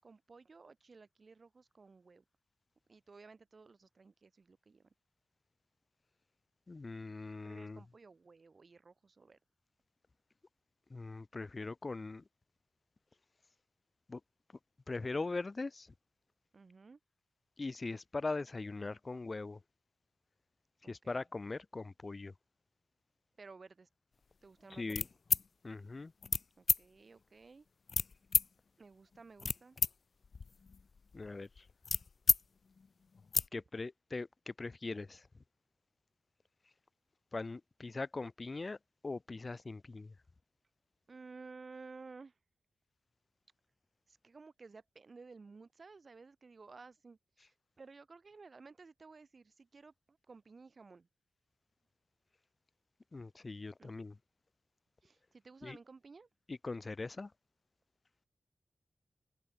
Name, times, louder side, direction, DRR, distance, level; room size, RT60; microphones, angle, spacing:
voice 1, 0.0-2.2 2.9-4.8 7.4-9.4 16.5-17.0 20.8-21.2 23.4-23.9 24.4-25.1 26.6-27.6 28.8-29.8 41.1-42.3 44.1-51.1 53.8-53.9 55.0-56.3, right 4 dB, 50° right, 6.8 m, -55 dB
voice 2, 6.7-7.8 10.9-12.2 14.1-14.2 14.9-15.9 17.6-19.6 20.8-22.3 24.7-25.1 25.6-26.1 31.1-31.7 33.5-35.3 37.3-38.8 39.0-40.1 53.1-54.2 55.6-55.8 56.5-57.3, left 3 dB, 35° left, 1.5 m, -41 dB
sound 1, 24.9-25.5 26.2-26.4 26.7-26.8 27.9-28.5 29.1-29.9 30.2-32.4 32.8-32.9 33.1-33.5, left 5 dB, 55° left, 0.7 m, -31 dB
wide cardioid pair, 95°, 0 cm